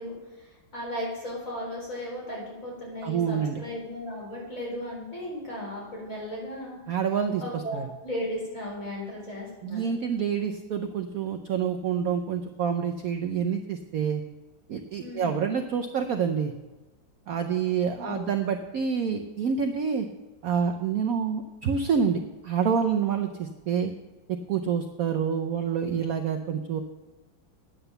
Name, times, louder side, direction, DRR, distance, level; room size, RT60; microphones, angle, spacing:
voice 1, 0.0-6.8 7.4-9.8 15.0-15.4 18.0-18.2, left 1 dB, 45° left, -4 dB, 4.7 m, -36 dB
voice 2, 3.0-3.6 6.9-7.9 9.6-14.2 14.7-16.5 17.3-20.1 20.4-23.9 24.3-26.8, right 7 dB, 65° right, 5 dB, 0.9 m, -27 dB
9.8 x 8.9 x 6.8 m, 1.2 s
omnidirectional pair, 2.1 m